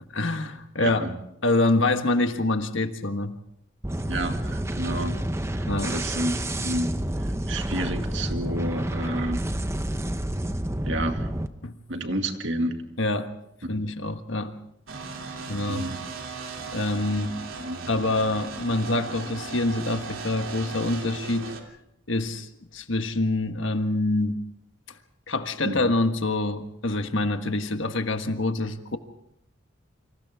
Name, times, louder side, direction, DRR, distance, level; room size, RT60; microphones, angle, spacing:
voice 1, 0.1-1.0 1.4-3.3 5.7-5.9 11.6-11.7 13.0-13.3 13.7-14.5 15.5-15.9 16.7-17.4 17.9-21.5 22.1-24.4 25.3-29.0, left 2 dB, 70° left, 7 dB, 1.5 m, -26 dB
voice 2, 0.8-1.2 4.1-5.2 5.5-6.9 7.5-9.4 10.9-11.3 11.9-12.8 15.7-16.0 17.6-17.9 25.6-25.8, right 1 dB, 65° right, 5 dB, 2.2 m, -30 dB
sound 1, 3.8-11.5, right 1 dB, 15° right, 0.8 m, -29 dB
sound 2, 14.9-21.6, right 4 dB, 80° right, 3.1 m, -37 dB
28.5 x 25.5 x 3.6 m, 0.75 s
head